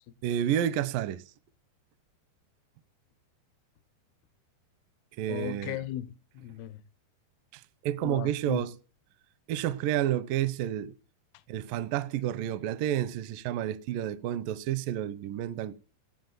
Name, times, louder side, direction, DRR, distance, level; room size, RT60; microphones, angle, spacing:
voice 1, 0.2-1.2 5.2-5.8 7.5-8.7 9.5-10.9 11.5-15.7, right 11 dB, 80° right, 2.0 m, -30 dB
voice 2, 5.3-6.8 8.0-8.7, left 13 dB, 75° left, 2.6 m, -37 dB
17.5 x 7.6 x 8.0 m
omnidirectional pair, 5.0 m